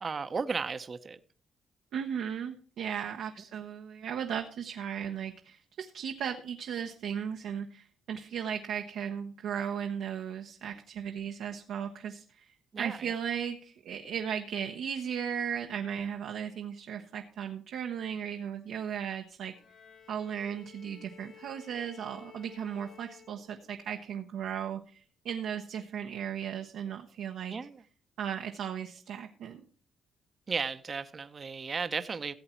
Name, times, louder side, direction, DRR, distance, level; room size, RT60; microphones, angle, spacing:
voice 1, 0.0-1.2 12.7-13.1 27.5-27.8 30.5-32.3, right 5 dB, 40° right, 0.8 m, -34 dB
voice 2, 1.9-12.5 12.8-19.6 20.1-27.6 28.2-29.6, right 8 dB, 80° right, 0.9 m, -36 dB
Bowed string instrument, 19.5-24.0, left 8 dB, 65° left, 3.9 m, -55 dB
15.5 x 7.9 x 4.4 m
cardioid pair, 90°, 0 cm